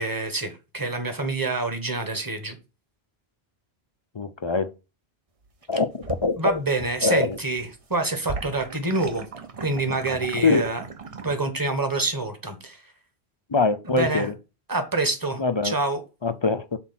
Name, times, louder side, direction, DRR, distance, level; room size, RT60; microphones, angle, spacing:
voice 1, 0.0-2.6 6.4-9.3 9.6-10.8 11.2-12.8 13.8-14.3 14.7-16.0, right 2 dB, 20° right, 1.2 m, -27 dB
voice 2, 4.1-4.7 5.7-6.6 7.0-7.4 10.4-10.6 13.5-14.3 15.4-15.7 16.2-16.8, left 3 dB, 40° left, 0.4 m, -23 dB
sound 1, 5.5-7.0 7.3-11.4, right 4 dB, 40° right, 0.7 m, -38 dB
6.0 x 4.1 x 5.8 m
omnidirectional pair, 1.1 m